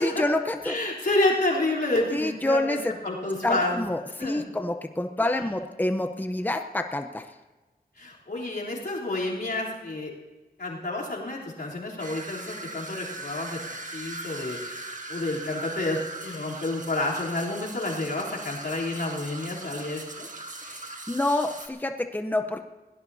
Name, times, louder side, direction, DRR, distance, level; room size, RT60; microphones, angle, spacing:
voice 1, 0.0-0.8 2.1-2.9 3.4-7.3 20.6-22.7, left 1 dB, 10° left, 6 dB, 0.8 m, -27 dB
voice 2, 0.6-2.8 3.0-3.8 4.2-4.4 5.3-5.4 8.0-10.1 10.6-20.3, left 2 dB, 85° left, -5 dB, 3.4 m, -29 dB
sound 1, 12.0-21.7, right 2 dB, 50° right, 1.6 m, -39 dB
22.0 x 17.0 x 2.8 m, 1.2 s
wide cardioid pair, 75°, 16 cm